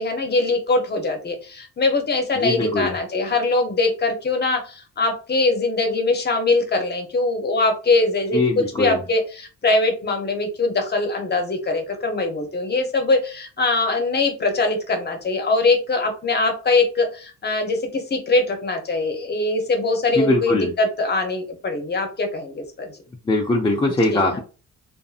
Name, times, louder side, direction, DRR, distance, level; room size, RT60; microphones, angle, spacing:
voice 1, 0.0-22.9 24.1-24.4, left 3 dB, 35° left, 5 dB, 0.8 m, -22 dB
voice 2, 2.4-2.9 8.3-9.0 20.1-20.7 23.3-24.4, left 2 dB, 15° left, 0 dB, 0.4 m, -21 dB
2.6 x 2.5 x 2.4 m, 0.35 s
cardioid pair, 90°, 30 cm